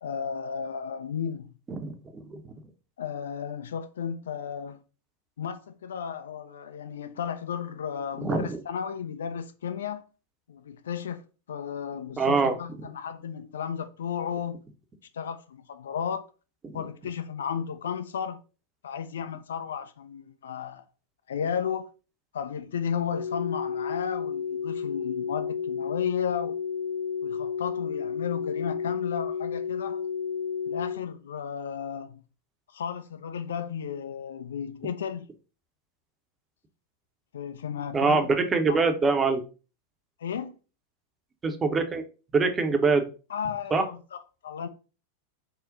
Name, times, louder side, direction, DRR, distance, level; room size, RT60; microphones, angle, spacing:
voice 1, 0.0-1.5 3.0-4.8 5.4-10.0 10.5-11.2 11.5-14.6 15.1-16.3 16.7-18.4 18.8-20.8 21.3-21.9 22.3-26.6 27.2-30.0 30.7-32.2 32.7-35.3 37.3-38.4 38.7-38.8 40.2-40.5 43.3-44.7, left 7 dB, 65° left, 0.4 m, -34 dB
voice 2, 1.7-2.5 8.2-8.5 12.2-12.6 16.6-16.8 37.9-39.4 41.4-42.0 42.3-43.0 43.7-43.8, right 4 dB, 20° right, 0.6 m, -24 dB
sound 1, 23.1-31.0, left 6 dB, 90° right, 0.9 m, -32 dB
3.8 x 2.1 x 3.8 m
figure-of-eight pair, 90°, 0 cm